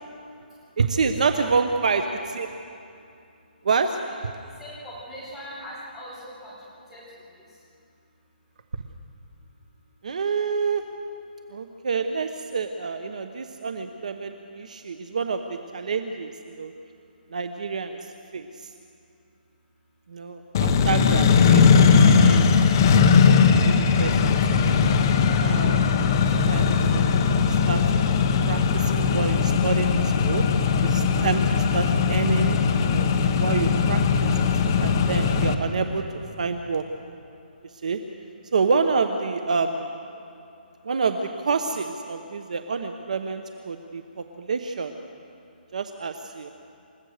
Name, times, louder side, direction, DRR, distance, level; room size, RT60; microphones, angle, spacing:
voice 1, 0.8-2.5 3.6-4.0 10.0-10.8 11.5-16.7 17.3-18.7 20.1-22.5 23.3-24.1 24.5-25.9 26.4-30.4 30.8-34.5 34.8-36.0 36.4-36.9 37.8-38.0 38.5-40.0 40.8-44.9 45.7-46.5, right 5 dB, 45° right, 7 dB, 1.0 m, -28 dB
voice 2, 4.6-6.5 6.9-7.0, equal, ahead, -10 dB, 4.8 m, -40 dB
Accelerating revving vroom, 20.5-35.5, left 5 dB, 20° left, 0.8 m, -19 dB
28.5 x 16.0 x 6.6 m, 2.6 s
hypercardioid pair, 180°, 5 cm